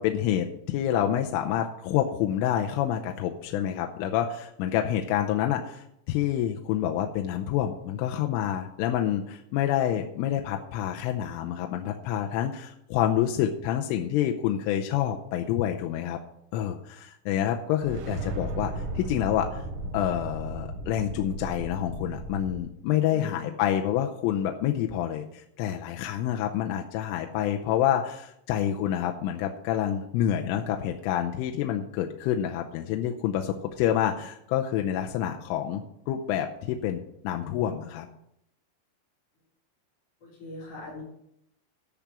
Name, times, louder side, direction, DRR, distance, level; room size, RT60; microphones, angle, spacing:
voice 1, 0.0-16.2 16.5-19.6 19.9-38.1, left 10 dB, 85° left, 3 dB, 3.2 m, -28 dB
sound 1, 17.8-22.6, right 1 dB, 80° right, 4.2 m, -35 dB
voice 2, 23.1-23.5 40.2-41.0, left 1 dB, 35° left, -8 dB, 4.1 m, -41 dB
10.5 x 6.1 x 8.9 m, 0.77 s
omnidirectional pair, 5.8 m